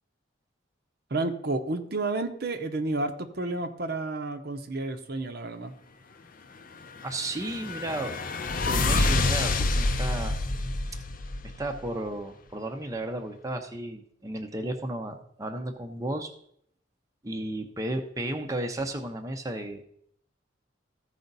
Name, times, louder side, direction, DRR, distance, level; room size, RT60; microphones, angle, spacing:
voice 1, 1.1-5.7, right 2 dB, 55° right, 7 dB, 0.8 m, -31 dB
sound 1, 7.0-11.9, left 2 dB, 45° left, 0.6 m, -27 dB
voice 2, 7.0-8.2 8.6-10.3 11.4-16.3 17.2-19.8, right 1 dB, 20° right, 4 dB, 0.7 m, -33 dB
14.5 x 5.0 x 4.0 m, 0.68 s
head